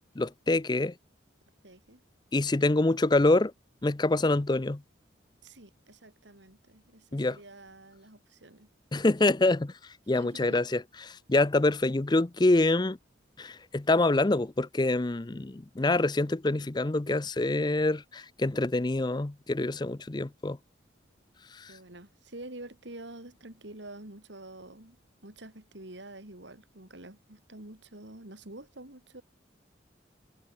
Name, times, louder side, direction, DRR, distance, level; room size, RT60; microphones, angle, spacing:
voice 1, 0.2-0.9 2.3-3.5 3.8-4.8 7.1-7.4 8.9-13.0 13.4-20.6 21.5-21.7, left 2 dB, 20° left, 0.5 m, -26 dB
voice 2, 1.6-2.0 5.4-8.7 10.1-10.6 21.7-29.2, right 1 dB, 65° right, 3.5 m, -47 dB
head